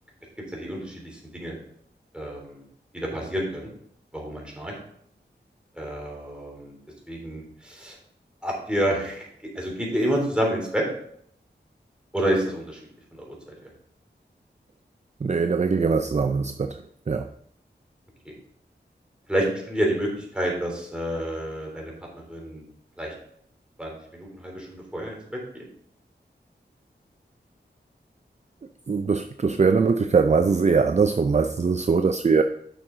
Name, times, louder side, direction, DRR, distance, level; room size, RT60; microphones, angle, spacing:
voice 1, 0.5-1.5 2.1-2.6 2.9-3.7 4.1-4.8 5.7-6.8 7.1-8.0 8.4-9.3 9.5-10.9 12.1-12.8 13.1-13.7 18.2-18.3 19.3-21.9 22.3-22.6 23.0-23.1 23.8-25.4, right 1 dB, 5° right, -2 dB, 3.2 m, -29 dB
voice 2, 15.2-17.3 28.9-32.4, right 5 dB, 40° right, 8 dB, 0.4 m, -22 dB
8.7 x 6.1 x 3.8 m, 0.68 s
wide cardioid pair, 65°, 19 cm